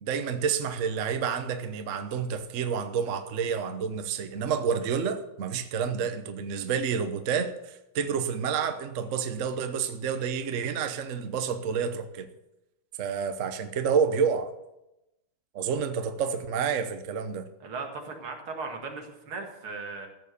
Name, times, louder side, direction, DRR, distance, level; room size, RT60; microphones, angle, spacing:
voice 1, 0.0-12.3 13.0-14.5 15.5-17.4, right 6 dB, 50° right, 8 dB, 1.0 m, -29 dB
voice 2, 17.6-20.1, right 4 dB, 80° right, 2 dB, 2.8 m, -37 dB
14.5 x 7.2 x 6.8 m, 0.93 s
omnidirectional pair, 2.3 m